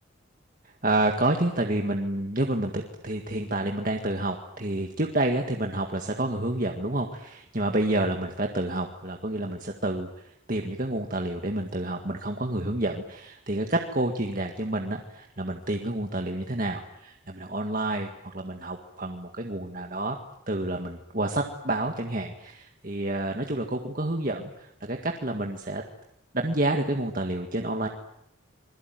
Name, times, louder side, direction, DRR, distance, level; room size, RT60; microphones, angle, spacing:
voice 1, 0.8-20.2 20.5-25.8 26.3-27.9, right 1 dB, 40° right, 3 dB, 1.9 m, -29 dB
27.0 x 22.0 x 9.3 m, 0.78 s
head